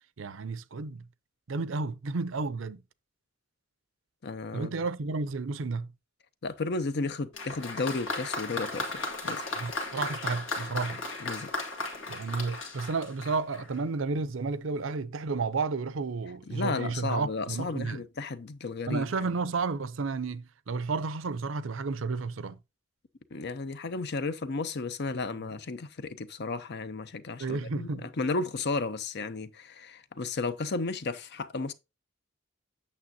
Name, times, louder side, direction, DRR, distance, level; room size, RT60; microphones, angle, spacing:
voice 1, 0.2-1.0 1.5-2.8 4.5-5.9 9.6-11.0 12.1-18.0 18.9-22.6 25.4-25.5 27.4-28.1, right 4 dB, 75° right, 0.6 m, -32 dB
voice 2, 4.2-4.7 6.4-9.4 11.2-11.5 16.5-19.1 23.3-31.7, left 3 dB, 55° left, 0.7 m, -33 dB
Applause, 7.3-13.8 14.7-14.8, left 2 dB, 85° left, 2.1 m, -35 dB
8.6 x 6.9 x 2.8 m
head